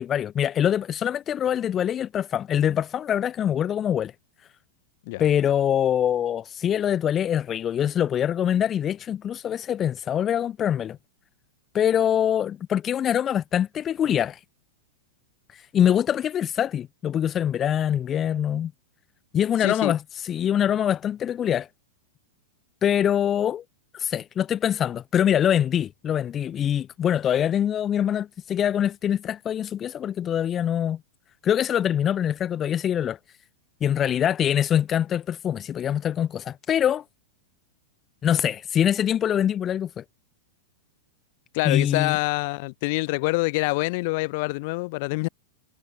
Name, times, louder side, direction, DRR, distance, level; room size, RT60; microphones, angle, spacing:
voice 1, 0.0-4.1 5.2-11.0 11.7-14.4 15.5-18.7 19.3-21.7 22.8-23.6 23.9-31.0 31.4-33.2 33.8-37.0 38.2-40.0 41.6-42.2, left 9 dB, 25° left, 1.0 m, -24 dB
voice 2, 19.6-19.9 41.5-45.3, left 26 dB, 55° left, 1.5 m, -26 dB
hypercardioid pair, 130°, 0 cm